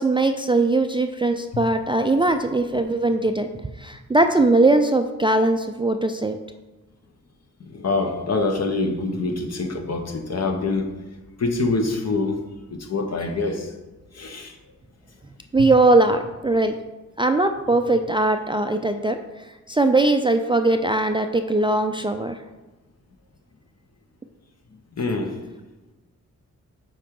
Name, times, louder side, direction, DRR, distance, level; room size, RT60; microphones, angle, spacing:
voice 1, 0.0-6.4 15.5-16.7 17.2-19.2 19.7-22.4, right 2 dB, 15° right, 6 dB, 0.3 m, -20 dB
voice 2, 7.7-10.9 11.4-12.4 12.7-13.7 14.1-14.5 15.6-15.7 25.0-25.3, left 3 dB, 55° left, 5 dB, 1.0 m, -25 dB
7.5 x 4.9 x 3.7 m, 1.1 s
cardioid pair, 80°, 32 cm